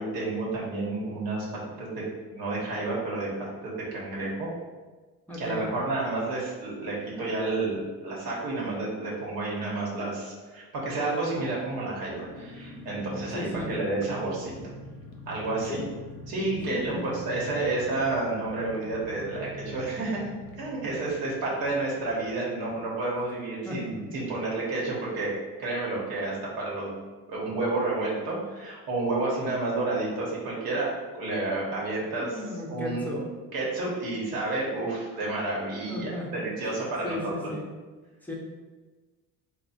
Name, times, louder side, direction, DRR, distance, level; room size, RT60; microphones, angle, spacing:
voice 1, 0.0-1.4 1.8-2.0 2.3-3.3 3.6-4.5 5.4-14.7 15.3-15.8 16.3-20.3 20.6-25.3 25.6-26.9 27.3-33.2 33.5-37.3, right 2 dB, 80° right, -5 dB, 1.1 m, -30 dB
voice 2, 5.3-5.7 13.3-13.7 15.7-15.8 16.7-17.1 23.6-23.8 32.2-33.2 35.9-36.3 37.0-37.7 38.2-38.3, left 2 dB, 5° left, -3 dB, 0.5 m, -35 dB
sound 1, 12.1-24.4 24.7-24.8 25.1-25.4, equal, 45° left, 0.6 m, -45 dB
3.3 x 2.2 x 4.0 m, 1.3 s
cardioid pair, 150°, 36 cm